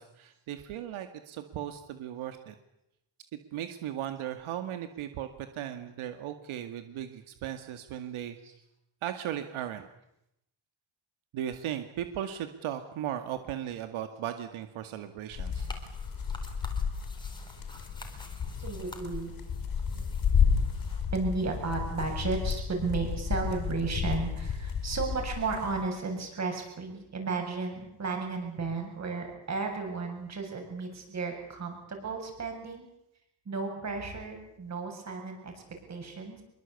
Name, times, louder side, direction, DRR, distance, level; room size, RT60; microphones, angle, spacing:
voice 1, 0.0-2.6 3.5-5.3 5.5-8.4 9.0-9.8 11.3-15.7, right 11 dB, 85° right, 8 dB, 2.2 m, -37 dB
sound 1, 15.3-25.8, left 6 dB, 45° left, 4.8 m, -32 dB
sound 2, 15.5-21.0, left 1 dB, 10° left, 3.9 m, -50 dB
voice 2, 18.6-19.3 20.0-20.1 21.1-32.9 33.4-36.4, right 4 dB, 35° right, 3 dB, 7.6 m, -34 dB
25.5 x 23.0 x 8.4 m, 0.82 s
cardioid pair, 165°, 48 cm